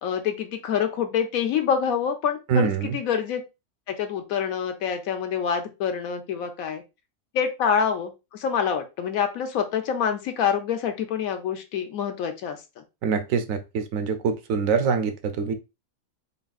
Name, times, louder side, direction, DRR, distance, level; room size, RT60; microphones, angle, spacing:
voice 1, 0.0-3.4 3.9-6.8 7.3-12.6, left 7 dB, 75° left, 1.1 m, -26 dB
voice 2, 2.5-3.0 13.0-15.5, right 5 dB, 70° right, 1.0 m, -24 dB
4.1 x 3.5 x 2.3 m
omnidirectional pair, 1.5 m